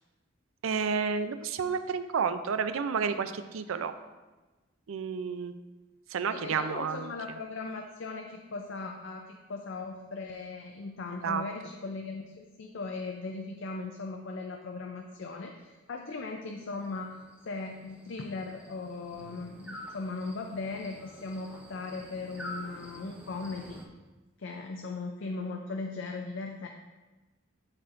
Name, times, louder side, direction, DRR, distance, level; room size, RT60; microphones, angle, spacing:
voice 1, 0.6-3.9 4.9-5.5 6.1-7.1 11.2-11.4, right 6 dB, 80° right, 11 dB, 0.4 m, -30 dB
voice 2, 6.3-17.1 17.5-23.8 24.4-26.7, left 3 dB, 65° left, 2 dB, 0.5 m, -38 dB
sound 1, 16.6-23.9, equal, 5° right, 0.6 m, -48 dB
12.0 x 4.4 x 2.5 m, 1.2 s
head